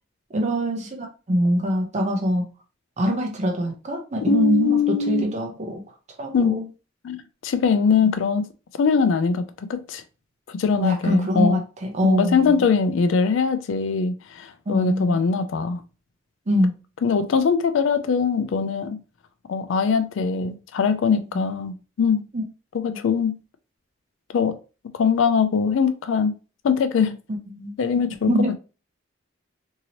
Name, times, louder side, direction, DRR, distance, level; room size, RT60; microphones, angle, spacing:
voice 1, 0.3-2.5 3.0-4.8 5.1-5.8 6.2-6.7 7.9-8.1 10.8-12.4 14.7-15.2 16.5-16.7 21.3-21.5 22.3-22.4 22.9-23.0 27.5-27.7 28.3-28.5, equal, 35° right, 0.6 m, -23 dB
voice 2, 4.3-5.3 6.3-6.6 7.0-8.4 8.8-9.4 9.7-10.0 10.5-11.6 12.0-15.8 17.0-19.0 19.5-22.2 22.7-23.4 24.3-24.6 24.9-26.3 26.6-27.2 27.8-28.3, left 5 dB, 75° left, 0.4 m, -22 dB
2.8 x 2.7 x 2.8 m
head